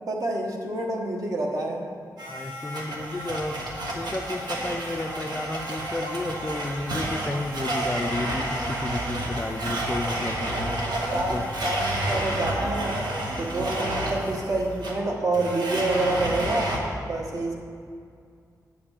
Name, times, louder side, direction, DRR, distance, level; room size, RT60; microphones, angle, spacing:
voice 1, 0.0-1.8 10.8-13.0 13.4-17.5, right 2 dB, 55° right, 0 dB, 1.2 m, -28 dB
voice 2, 2.2-3.6 3.9-10.8 11.3-11.5 13.7-14.0, left 2 dB, 20° left, 5 dB, 0.4 m, -32 dB
Domestic sounds home sounds, 2.2-16.8, right 1 dB, 80° right, 1.3 m, -30 dB
9.1 x 5.1 x 7.2 m, 2.3 s
wide cardioid pair, 160°, 7 cm